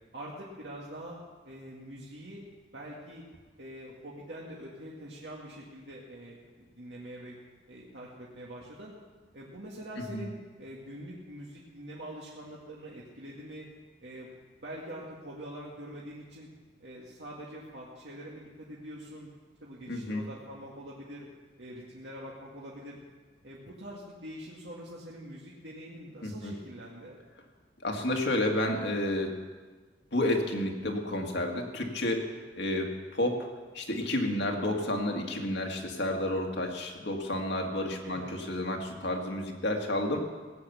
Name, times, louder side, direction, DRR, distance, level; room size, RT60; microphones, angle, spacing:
voice 1, 0.1-1.2 1.4-2.4 2.7-3.2 3.6-7.4 7.7-8.9 9.3-13.7 14.0-14.3 14.6-16.5 16.8-19.3 19.6-21.3 21.6-23.0 23.4-27.2 38.0-38.3, equal, 80° right, -4 dB, 2.0 m, -44 dB
voice 2, 19.9-20.2 26.2-26.5 27.8-29.3 30.1-33.5 33.7-40.2, left 1 dB, 75° left, 2 dB, 2.0 m, -31 dB
17.5 x 8.6 x 7.0 m, 1.4 s
head